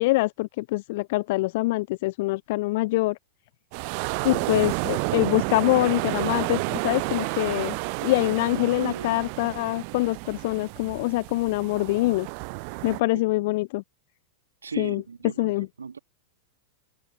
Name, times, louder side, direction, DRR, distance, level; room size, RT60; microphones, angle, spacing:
voice 1, 0.0-3.2 4.2-7.8 8.0-12.3 12.8-13.8 14.8-15.0 15.4-15.7, left 21 dB, 50° left, 0.3 m, -24 dB
sound 1, 3.7-13.0, right 39 dB, 45° right, 0.6 m, -31 dB
voice 2, 8.5-9.2 12.8-13.3 14.6-16.0, right 5 dB, 75° right, 2.5 m, -37 dB
figure-of-eight pair, 95°, 0 cm